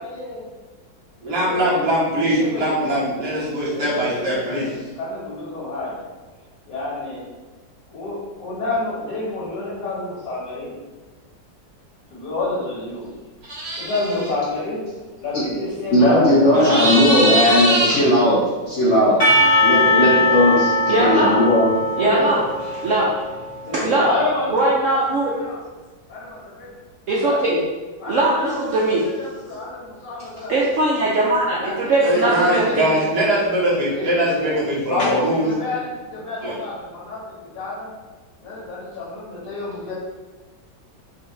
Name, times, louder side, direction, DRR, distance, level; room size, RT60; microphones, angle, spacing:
voice 1, 0.0-0.4 1.2-1.9 2.2-2.9 3.7-4.7 5.0-6.0 6.7-7.2 7.9-10.7 12.1-13.1 13.8-14.9 15.2-19.3 19.7-20.6 21.0-21.3 21.9-22.4 23.6-25.6 26.1-26.7 27.2-27.4 28.0-30.5 31.6-31.9 32.2-33.4 33.8-34.5 34.9-37.2 37.5-37.9 38.4-39.9, left 2 dB, 80° left, -9 dB, 2.2 m, -29 dB
voice 2, 1.2-4.7 32.0-35.5 36.4-36.6, right 1 dB, 55° right, -7 dB, 1.8 m, -21 dB
sound 1, 13.4-14.3 16.5-18.0, right 1 dB, 40° right, 1.3 m, -21 dB
voice 3, 15.9-19.2 19.6-20.7 21.0-21.7, left 1 dB, 60° left, -6 dB, 0.8 m, -17 dB
Percussion / Church bell, 19.2-24.0, left 2 dB, 35° left, 1.2 m, -20 dB
voice 4, 20.9-21.4 22.0-22.4 22.8-23.1 23.7-24.1 24.5-25.3 27.1-27.6 28.1-29.0 30.5-33.0, right 2 dB, 75° right, -5 dB, 0.7 m, -20 dB
5.4 x 2.5 x 3.2 m, 1.2 s
omnidirectional pair, 2.0 m